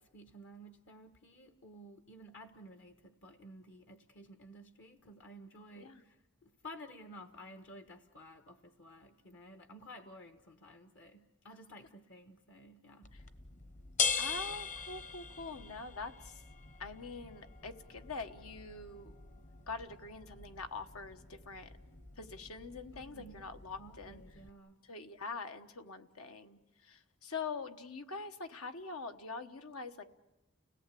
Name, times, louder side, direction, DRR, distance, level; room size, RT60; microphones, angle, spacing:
voice 1, 0.0-13.1 22.9-24.8, equal, 55° left, 1.1 m, -53 dB
sound 1, 13.0-24.5, left 6 dB, 35° left, 1.0 m, -42 dB
voice 2, 14.2-16.4 16.8-19.1 19.7-21.7 22.2-24.2 24.8-30.0, left 4 dB, 85° left, 1.3 m, -44 dB
30.0 x 18.0 x 8.4 m
head